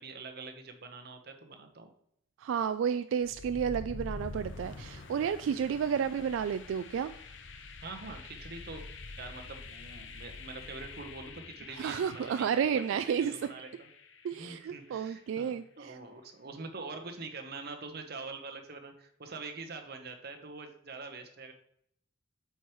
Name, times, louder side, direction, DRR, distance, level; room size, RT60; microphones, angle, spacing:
voice 1, 0.0-1.9 7.8-13.9 14.3-21.5, right 3 dB, 55° right, 5 dB, 1.0 m, -45 dB
voice 2, 2.4-7.1 11.8-13.3 14.2-15.9, right 7 dB, 85° right, 11 dB, 0.3 m, -31 dB
sound 1, 3.2-15.1, left 3 dB, 70° left, 0.7 m, -46 dB
8.0 x 4.7 x 3.0 m, 0.70 s
head